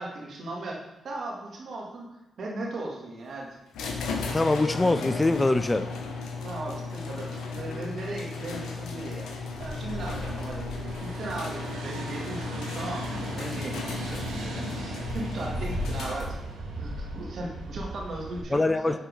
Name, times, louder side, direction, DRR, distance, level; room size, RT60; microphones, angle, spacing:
voice 1, 0.0-2.1 2.4-3.5 6.4-9.3 9.6-16.4 16.8-19.0, right 2 dB, 60° right, -2 dB, 1.8 m, -37 dB
sound 1, 3.7-16.5, left 4 dB, 75° left, 0.9 m, -35 dB
voice 2, 4.3-5.9 18.5-19.0, left 2 dB, 20° left, 11 dB, 0.4 m, -23 dB
sound 2, 9.5-18.4, right 1 dB, 90° right, 1.3 m, -36 dB
6.8 x 4.3 x 5.1 m, 0.98 s
hypercardioid pair, 45°, 0 cm